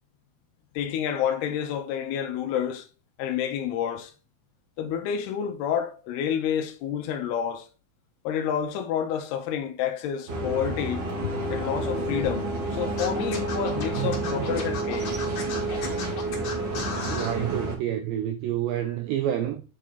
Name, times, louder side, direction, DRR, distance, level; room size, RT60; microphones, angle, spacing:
voice 1, 0.8-2.9 3.2-4.1 4.8-7.7 8.2-15.1, left 9 dB, 85° left, 2.6 m, -29 dB
sound 1, 10.3-17.7, right 2 dB, 55° right, 1.4 m, -29 dB
Scratching (performance technique), 13.0-17.4, left 5 dB, 55° left, 2.7 m, -35 dB
voice 2, 17.1-19.6, right 11 dB, 85° right, 2.0 m, -28 dB
7.3 x 3.7 x 4.2 m
omnidirectional pair, 4.6 m